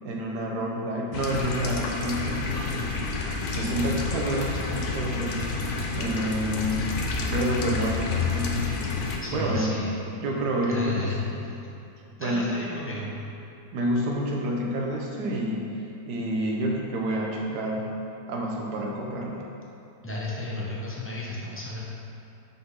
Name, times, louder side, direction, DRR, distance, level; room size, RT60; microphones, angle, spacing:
voice 1, 0.0-2.9 3.5-5.5 5.9-6.9 7.3-8.8 9.3-9.8 10.1-11.3 12.2-12.5 13.7-15.7 16.1-17.9 18.3-19.4, right 1 dB, 75° right, -1 dB, 1.4 m, -28 dB
sound 1, 1.1-9.2, left 4 dB, 60° left, 0.8 m, -29 dB
voice 2, 9.2-9.9 10.7-11.5 12.2-13.1 20.0-21.8, left 2 dB, 15° left, -6 dB, 0.5 m, -33 dB
5.8 x 4.0 x 5.5 m, 2.8 s
omnidirectional pair, 1.8 m